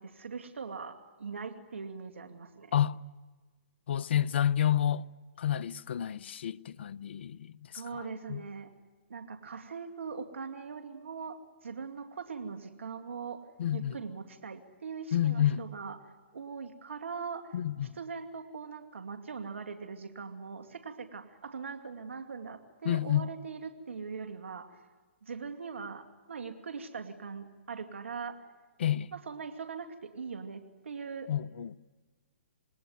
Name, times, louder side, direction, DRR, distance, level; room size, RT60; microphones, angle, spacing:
voice 1, 0.0-2.7 7.7-8.7 9.1-17.6 17.9-24.8 25.2-28.4 29.1-31.3, right 5 dB, 80° right, 2.4 m, -41 dB
voice 2, 2.7-3.0 3.9-5.1 5.4-8.0 8.3-8.4 13.6-14.0 15.1-15.7 17.5-17.9 22.8-23.3 28.8-29.1 31.3-31.8, left 10 dB, 65° left, 0.9 m, -29 dB
27.0 x 20.5 x 9.4 m
hypercardioid pair, 135°, 7 cm